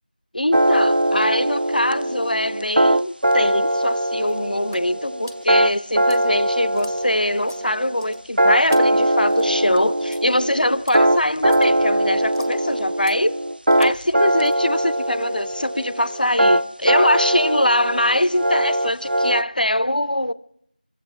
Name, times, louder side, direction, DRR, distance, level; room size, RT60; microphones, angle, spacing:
voice 1, 0.3-13.4 13.8-20.3, left 1 dB, 65° left, 0.5 m, -22 dB
sound 1, 0.5-19.4, right 1 dB, 75° right, 0.5 m, -21 dB
sound 2, 2.7-15.8, equal, 20° right, 0.9 m, -49 dB
24.5 x 16.0 x 3.4 m
figure-of-eight pair, 180°, 5 cm